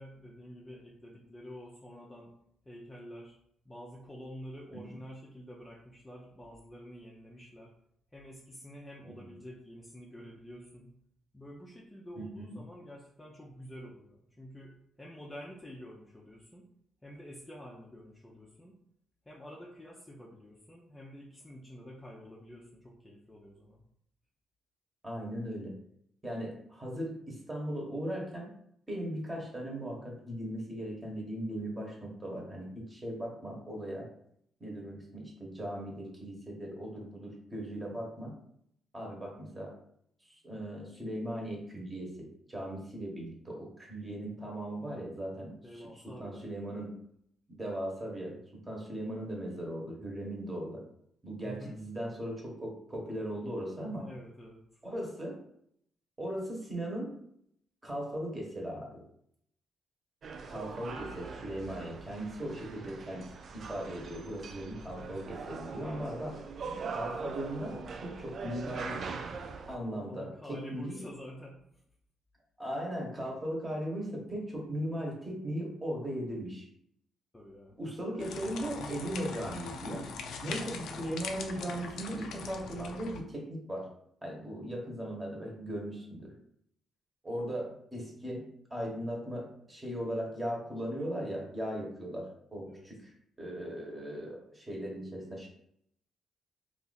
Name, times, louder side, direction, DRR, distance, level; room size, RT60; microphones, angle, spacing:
voice 1, 0.0-2.3 2.6-3.4 3.6-7.7 8.1-10.9 11.3-16.7 17.0-18.8 19.3-23.8 45.6-46.7 51.4-51.8 53.8-54.6 69.9-71.8 77.3-77.8 92.6-92.9, equal, 15° left, -3 dB, 0.6 m, -48 dB
voice 2, 12.2-12.6 25.0-25.7 26.2-28.5 28.9-34.1 34.6-38.3 38.9-39.7 40.3-46.9 47.5-48.4 48.6-50.8 51.2-54.1 54.8-55.4 56.2-57.2 57.8-59.0 60.5-63.3 63.5-66.4 66.9-69.0 69.7-70.9 72.6-76.7 77.8-80.1 80.4-83.9 84.2-86.3 87.2-93.0 93.4-95.5, equal, 20° right, -1 dB, 1.2 m, -38 dB
sound 1, 60.2-69.8, right 5 dB, 55° right, 0.3 m, -42 dB
sound 2, 78.2-83.2, left 5 dB, 75° left, 0.4 m, -41 dB
2.7 x 2.5 x 3.9 m, 0.71 s
cardioid pair, 90°, 0 cm